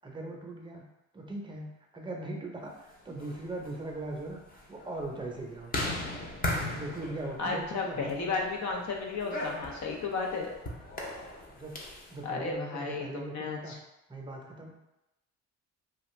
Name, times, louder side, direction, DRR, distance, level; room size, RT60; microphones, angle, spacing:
voice 1, 0.0-0.8 1.1-5.7 6.7-8.4 11.5-11.8 12.1-13.8 14.1-14.7, right 2 dB, 15° right, 0 dB, 0.6 m, -40 dB
sound 1, 3.0-12.1, left 2 dB, 30° left, 0.6 m, -38 dB
voice 2, 7.4-10.5 12.2-13.8, left 4 dB, 65° left, 0 dB, 0.7 m, -33 dB
2.4 x 2.3 x 3.1 m, 0.92 s
cardioid pair, 90°, 30 cm